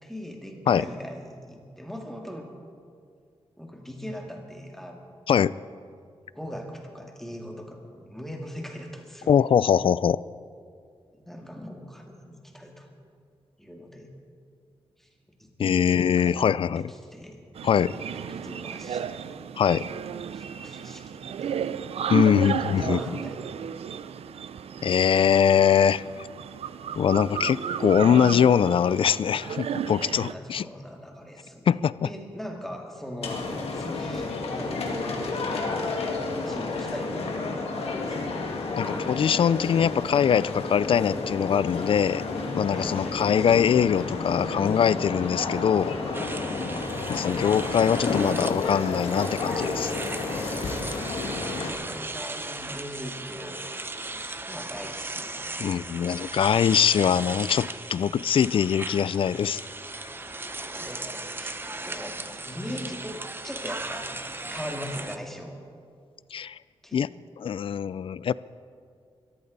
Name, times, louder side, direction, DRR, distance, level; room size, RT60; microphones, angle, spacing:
voice 1, 0.0-2.5 3.6-5.1 6.3-9.4 11.1-12.9 13.6-14.1 15.0-15.1 15.4-16.4 16.8-17.4 18.1-19.8 20.1-21.8 22.2-23.6 30.0-35.7 36.2-37.5 37.9-38.3 42.7-43.5 46.4-46.8 50.7-56.7 60.6-63.2 63.4-64.2 64.4-65.6 66.8-67.0, equal, 5° left, 1 dB, 2.1 m, -41 dB
voice 2, 9.3-10.2 15.6-16.9 17.6-17.9 19.6-19.8 22.1-23.2 24.8-26.0 27.0-30.6 31.7-32.1 38.8-42.2 42.5-45.9 47.1-49.9 55.6-59.6 66.3-66.6 66.9-67.1 67.4-68.3, left 8 dB, 60° left, 19 dB, 0.4 m, -22 dB
sound 1, 17.6-30.3, right 8 dB, 80° right, 0.5 m, -33 dB
sound 2, 33.2-51.7, left 3 dB, 90° left, 2.0 m, -31 dB
sound 3, 46.1-65.2, right 2 dB, 20° right, 0.7 m, -37 dB
22.5 x 14.0 x 4.1 m, 2.2 s
wide cardioid pair, 110°, 10 cm